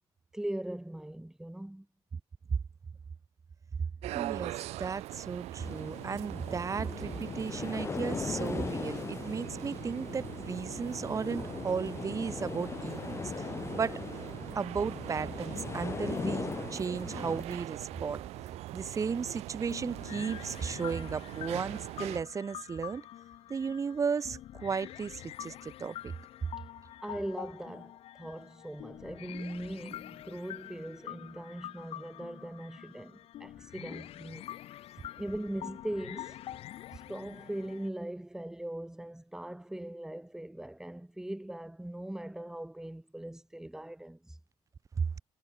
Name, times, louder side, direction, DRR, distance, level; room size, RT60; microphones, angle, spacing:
voice 1, 0.3-1.9 27.0-36.4 36.9-44.4, right 1 dB, 5° right, 7.4 m, -40 dB
sound 1, 4.0-22.2, right 17 dB, 85° right, 3.0 m, -42 dB
voice 2, 4.1-13.5 13.7-14.1 14.5-18.3 18.7-23.0 23.5-26.1 45.0-45.1, right 6 dB, 30° right, 7.4 m, -35 dB
sound 2, 5.6-17.4, left 5 dB, 25° left, 2.8 m, -39 dB
sound 3, 19.7-37.9, left 13 dB, 65° left, 5.6 m, -46 dB
cardioid pair, 135°, 11 cm